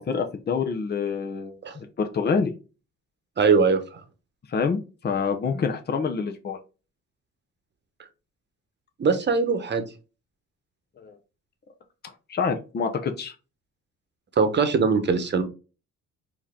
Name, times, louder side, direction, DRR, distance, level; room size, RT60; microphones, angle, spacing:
voice 1, 0.0-2.5 4.5-6.6 11.0-11.1 12.0-13.3, left 5 dB, 35° left, 5 dB, 0.8 m, -27 dB
voice 2, 3.4-3.8 9.0-9.8 14.4-15.4, right 5 dB, 35° right, 8 dB, 1.0 m, -21 dB
4.6 x 2.9 x 3.6 m, 0.32 s
cardioid pair, 90°, 30 cm